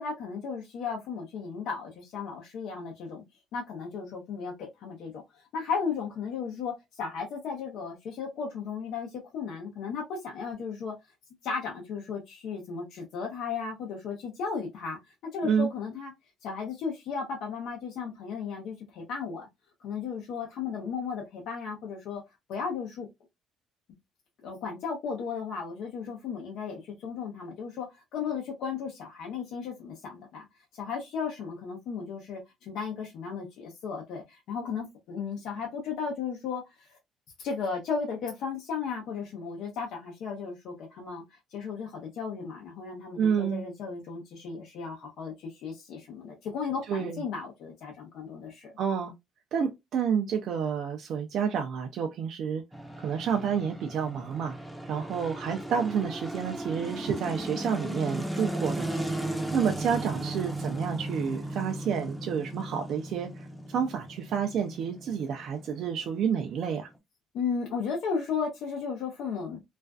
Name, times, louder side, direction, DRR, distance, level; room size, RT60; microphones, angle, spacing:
voice 1, 0.0-3.2 3.5-5.2 5.5-10.9 11.4-15.0 15.3-16.1 16.4-19.5 19.8-22.2 22.5-23.1 24.4-27.9 28.1-30.5 30.7-36.9 37.4-48.7 67.3-69.6, left 5 dB, 75° left, 0.6 m, -35 dB
voice 2, 43.2-43.6 46.9-47.2 48.8-49.1 49.5-52.6 53.0-54.6 54.8-58.9 59.5-66.9, right 7 dB, 65° right, 0.4 m, -29 dB
sound 1, 52.7-67.0, right 1 dB, ahead, 0.6 m, -36 dB
2.4 x 2.3 x 2.3 m
cardioid pair, 90°, 0 cm